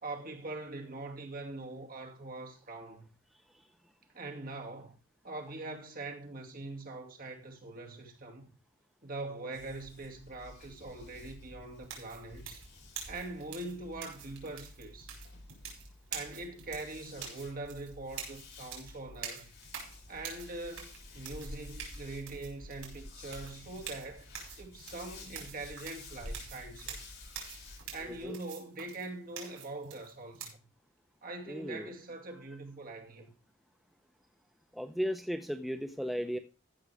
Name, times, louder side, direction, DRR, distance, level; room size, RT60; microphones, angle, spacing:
voice 1, 0.0-3.1 4.1-5.0 5.2-8.5 9.0-12.7 13.1-15.1 16.1-19.5 20.1-24.3 24.6-27.0 27.9-30.6 31.2-33.3, right 2 dB, 45° right, 2.4 m, -43 dB
sound 1, 9.5-28.2, left 2 dB, 55° left, 7.4 m, -50 dB
sound 2, 11.8-30.5, right 7 dB, 90° right, 5.4 m, -46 dB
voice 2, 28.0-28.4 31.5-31.9 34.7-36.4, equal, ahead, 0.6 m, -35 dB
15.0 x 6.3 x 4.8 m
head